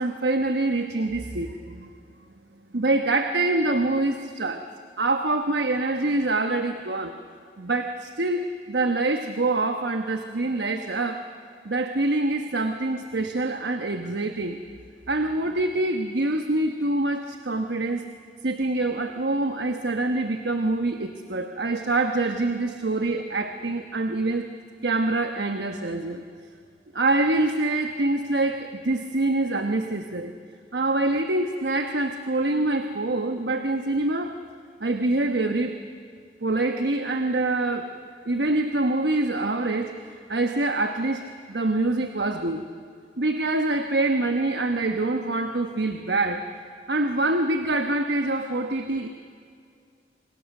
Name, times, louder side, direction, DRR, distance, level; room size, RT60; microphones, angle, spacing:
voice 1, 0.0-1.9 2.7-4.7 5.0-7.2 7.6-11.3 11.6-14.6 15.1-18.1 18.4-24.5 24.8-26.2 26.9-30.3 30.7-34.4 34.8-35.8 36.4-37.9 38.2-40.0 40.3-42.6 43.2-46.5 46.9-49.1, right 2 dB, 70° right, 6 dB, 1.2 m, -25 dB
28.0 x 23.5 x 6.6 m, 2.3 s
head